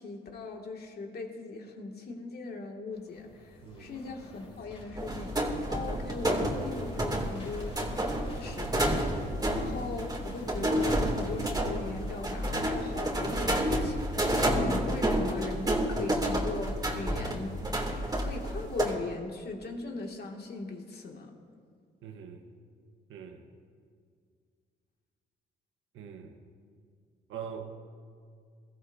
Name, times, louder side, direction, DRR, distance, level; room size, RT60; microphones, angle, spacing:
voice 1, 0.0-9.1 9.6-17.6 18.1-21.3, left 3 dB, 55° left, 2.3 m, -39 dB
sound 1, 2.9-14.2, left 1 dB, 30° left, 3.1 m, -47 dB
sound 2, 5.0-18.9, right 1 dB, 20° right, 2.7 m, -30 dB
voice 2, 22.0-22.5 23.1-23.4 25.9-26.4 27.3-27.6, right 7 dB, 85° right, 1.3 m, -43 dB
22.0 x 14.5 x 2.8 m
cardioid pair, 90°, 20 cm